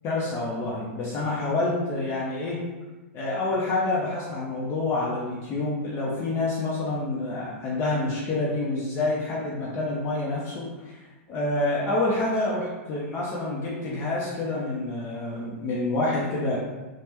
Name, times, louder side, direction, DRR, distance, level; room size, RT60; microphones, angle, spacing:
voice 1, 0.0-2.6 3.1-16.6, left 2 dB, 35° left, -5 dB, 0.6 m, -28 dB
3.3 x 2.1 x 2.9 m, 1.2 s
hypercardioid pair, 125°, 8 cm